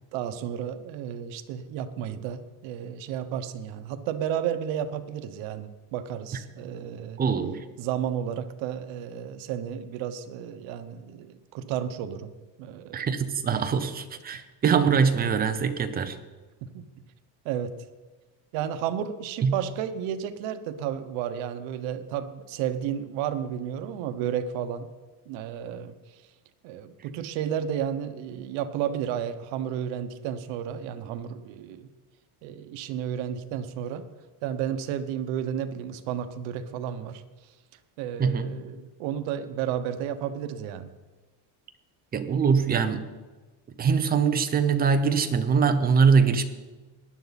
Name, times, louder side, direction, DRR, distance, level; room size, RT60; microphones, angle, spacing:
voice 1, 0.1-7.2 7.8-12.3 12.6-13.1 13.5-13.6 14.3-14.4 16.6-16.9 17.4-17.7 18.5-24.9 25.3-25.9 26.6-31.9 32.4-34.0 34.4-37.2 38.0-40.9, right 9 dB, 85° right, 10 dB, 1.1 m, -32 dB
voice 2, 7.2-7.6 12.9-16.2 19.4-19.6 38.2-38.6 42.1-43.1 43.8-46.4, right 6 dB, 20° right, 8 dB, 0.7 m, -23 dB
18.5 x 11.0 x 4.1 m, 1.3 s
cardioid pair, 175°, 44 cm